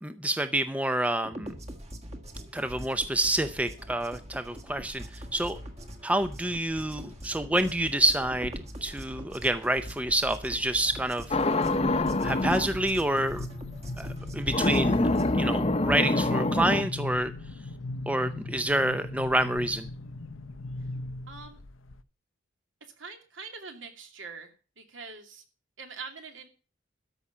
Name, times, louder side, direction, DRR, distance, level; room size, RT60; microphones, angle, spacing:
voice 1, 0.0-1.5 2.5-5.6 6.0-8.5 8.8-11.4 12.2-13.4 14.0-17.3 18.1-19.9, right 1 dB, 5° right, 10 dB, 0.6 m, -28 dB
sound 1, 1.2-15.4, equal, 35° right, 1.6 m, -43 dB
voice 2, 4.0-4.3 17.8-18.0 21.3-21.6 23.0-25.4 25.8-26.5, right 4 dB, 75° right, 5 dB, 2.6 m, -44 dB
sound 2, 5.3-5.8 6.3-6.9 7.5-8.4 8.8-9.1 9.4-22.0, left 2 dB, 80° left, 0.8 m, -39 dB
sound 3, 11.3-12.7 14.5-16.8, left 2 dB, 30° left, 0.9 m, -25 dB
13.5 x 5.7 x 8.5 m, 0.37 s
head